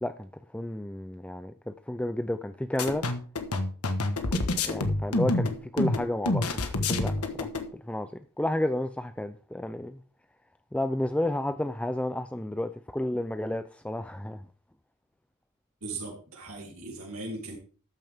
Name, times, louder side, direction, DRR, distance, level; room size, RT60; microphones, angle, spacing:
voice 1, 0.0-3.1 4.3-6.4 6.9-10.0 10.7-14.4, left 1 dB, 5° left, 0.4 m, -32 dB
sound 1, 2.8-7.7, left 2 dB, 85° left, 1.4 m, -27 dB
voice 2, 15.8-17.6, right 2 dB, 70° right, 3.4 m, -38 dB
13.0 x 9.1 x 3.6 m
head